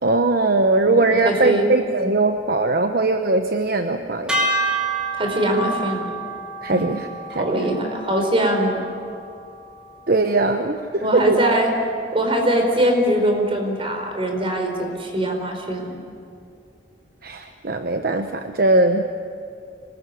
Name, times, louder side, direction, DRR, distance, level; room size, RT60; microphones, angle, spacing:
voice 1, 0.0-4.5 6.6-7.6 10.1-11.4 17.2-19.0, right 2 dB, 50° right, 6 dB, 1.0 m, -20 dB
voice 2, 0.8-1.7 5.1-6.1 6.7-6.9 7.3-8.8 11.0-11.7 12.1-15.9, right 1 dB, 30° right, 3 dB, 4.5 m, -22 dB
sound 1, 4.3-10.6, right 2 dB, 5° right, 3.4 m, -29 dB
25.5 x 20.5 x 9.8 m, 2.4 s
head